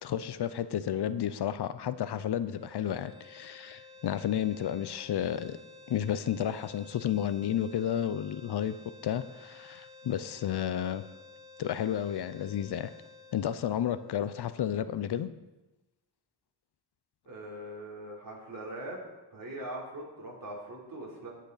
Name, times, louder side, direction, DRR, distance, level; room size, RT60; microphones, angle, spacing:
voice 1, 0.0-5.6 5.9-8.7 9.0-11.0 11.6-12.9 13.3-15.3, left 10 dB, 75° left, 13 dB, 0.6 m, -32 dB
sound 1, 2.5-14.7, left 3 dB, 50° left, 1.6 m, -53 dB
voice 2, 17.3-19.0 19.3-21.3, right 1 dB, 55° right, -3 dB, 3.6 m, -41 dB
17.0 x 6.3 x 4.1 m, 1.1 s
cardioid pair, 65°, 40 cm